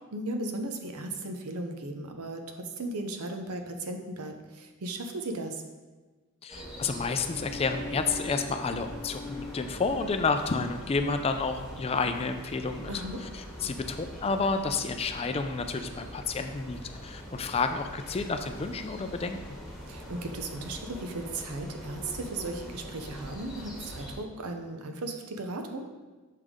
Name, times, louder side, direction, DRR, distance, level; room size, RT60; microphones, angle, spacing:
voice 1, 0.1-5.6 12.9-13.2 19.9-25.9, right 2 dB, 90° right, 5 dB, 0.7 m, -36 dB
voice 2, 6.4-12.9 13.2-19.4, left 4 dB, 25° left, 7 dB, 0.3 m, -30 dB
sound 1, 6.5-24.2, left 1 dB, ahead, 1.5 m, -42 dB
6.5 x 5.2 x 3.6 m, 1.3 s
head